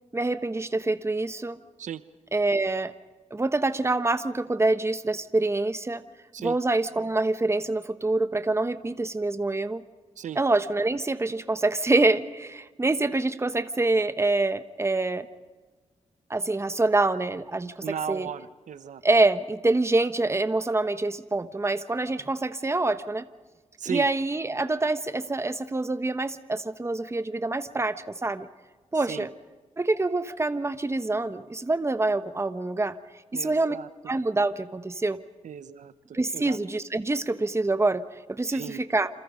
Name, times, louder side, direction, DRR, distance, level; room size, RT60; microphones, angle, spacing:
voice 1, 0.1-1.6 2.3-2.9 3.3-6.0 6.4-9.8 10.3-15.3 16.3-18.3 19.0-23.3 23.9-28.5 28.9-29.3 29.8-33.0 33.3-33.8 34.1-35.2 36.1-38.0 38.3-39.1, right 2 dB, 20° right, 11 dB, 1.2 m, -26 dB
voice 2, 17.8-19.0 23.8-24.1 29.1-29.3 33.3-33.9 35.4-36.6 38.5-38.8, right 8 dB, 85° right, 13 dB, 0.9 m, -36 dB
28.0 x 27.5 x 5.3 m, 1.3 s
cardioid pair, 80°, 12 cm